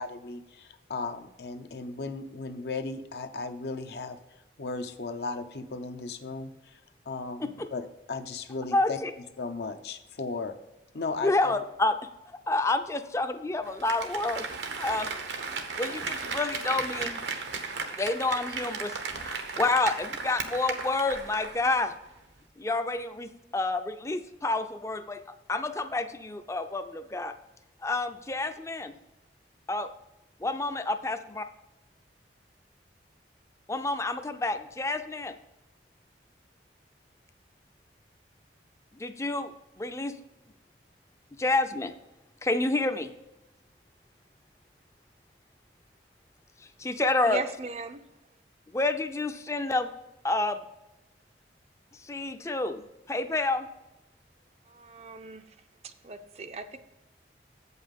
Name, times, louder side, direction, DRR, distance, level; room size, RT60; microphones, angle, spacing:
voice 1, 0.0-6.8 7.1-9.0 9.4-10.5 10.9-11.6, left 3 dB, 65° left, 8 dB, 0.6 m, -36 dB
voice 2, 8.7-9.1 11.2-12.0 12.5-14.5 14.8-15.1 15.8-17.2 17.9-21.9 22.6-27.3 27.8-28.9 29.7-29.9 30.4-31.5 33.7-35.3 38.9-40.2 41.4-41.9 42.4-43.1 46.8-47.4 48.7-49.9 50.2-50.6 52.0-53.7, left 2 dB, 15° left, 9 dB, 0.4 m, -29 dB
Applause, 13.6-21.8 22.2-22.3, right 4 dB, 85° right, 1.0 m, -35 dB
voice 3, 47.2-48.0 54.7-55.6 55.8-56.8, right 3 dB, 35° right, 9 dB, 0.5 m, -38 dB
7.9 x 5.5 x 5.2 m, 0.98 s
head